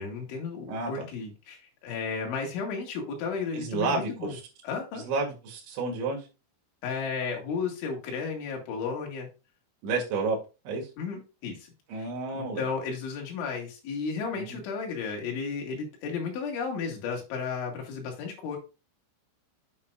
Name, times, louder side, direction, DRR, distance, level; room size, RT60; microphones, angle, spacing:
voice 1, 0.0-4.4 4.6-5.0 6.8-9.3 11.0-11.7 12.0-18.6, left 5 dB, 75° left, 1 dB, 4.2 m, -33 dB
voice 2, 0.7-1.1 3.5-4.4 5.1-6.2 9.8-10.4 10.7-10.9 11.9-12.7 14.5-14.6, right 3 dB, 70° right, 0 dB, 4.3 m, -30 dB
8.8 x 7.7 x 2.4 m, 0.31 s
omnidirectional pair, 5.6 m